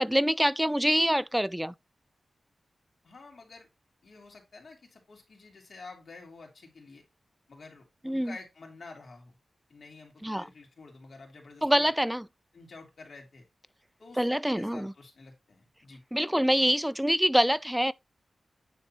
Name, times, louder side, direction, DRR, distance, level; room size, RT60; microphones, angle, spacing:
voice 1, 0.0-1.7 8.0-8.4 10.2-10.5 11.6-12.2 14.2-14.9 16.1-17.9, equal, 5° right, 0.4 m, -25 dB
voice 2, 3.0-3.7 4.0-7.0 7.5-9.4 9.7-11.9 12.5-13.4 14.0-16.0, left 3 dB, 65° left, 2.8 m, -49 dB
9.3 x 3.6 x 4.2 m
wide cardioid pair, 115°, 0 cm